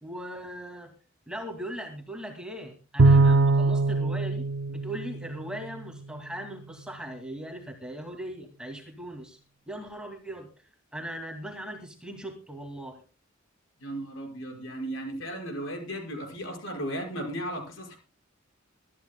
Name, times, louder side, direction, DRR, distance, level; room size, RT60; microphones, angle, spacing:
voice 1, 0.0-0.9 1.3-4.4 4.7-9.4 9.7-10.5 10.9-13.0, right 1 dB, 5° right, 2 dB, 2.2 m, -39 dB
Bowed string instrument, 3.0-5.6, right 3 dB, 85° right, 0.6 m, -21 dB
voice 2, 13.8-18.0, right 1 dB, 90° left, 2 dB, 5.5 m, -35 dB
23.5 x 13.5 x 2.2 m, 0.32 s
head